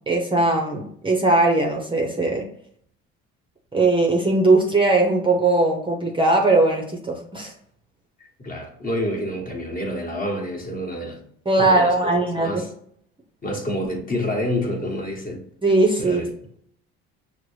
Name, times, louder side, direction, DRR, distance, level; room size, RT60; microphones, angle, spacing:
voice 1, 0.1-2.5 3.7-7.5 11.5-12.6 15.6-16.2, right 2 dB, 15° right, 0 dB, 0.7 m, -19 dB
voice 2, 8.4-11.2 11.6-12.7 13.4-15.5 16.0-16.3, left 1 dB, 25° left, 1 dB, 1.2 m, -28 dB
5.9 x 2.1 x 3.1 m, 0.65 s
hypercardioid pair, 70°, 32 cm